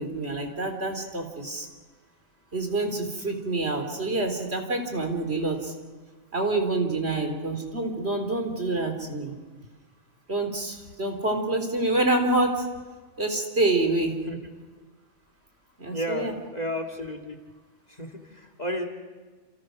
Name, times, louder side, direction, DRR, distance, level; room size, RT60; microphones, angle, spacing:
voice 1, 0.0-1.7 2.5-5.7 6.3-9.3 10.3-12.7 13.2-14.1 15.8-16.3, right 2 dB, 50° right, 4 dB, 3.7 m, -27 dB
voice 2, 15.9-17.4 17.9-18.9, equal, 30° left, 5 dB, 2.6 m, -33 dB
30.0 x 28.0 x 6.4 m, 1.3 s
omnidirectional pair, 1.4 m